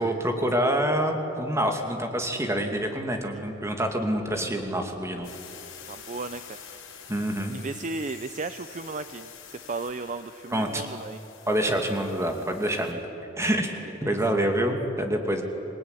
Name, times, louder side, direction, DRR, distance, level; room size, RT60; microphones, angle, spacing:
voice 1, 0.0-5.3 7.1-7.6 10.5-10.9 11.5-13.0 13.4-15.4, right 1 dB, 15° right, 3 dB, 2.6 m, -26 dB
sound 1, 5.2-12.9, left 7 dB, 85° left, 6.2 m, -47 dB
voice 2, 5.9-6.6 7.5-11.2 13.8-14.2, right 3 dB, 40° right, 10 dB, 0.6 m, -35 dB
27.0 x 19.5 x 9.9 m, 2.9 s
head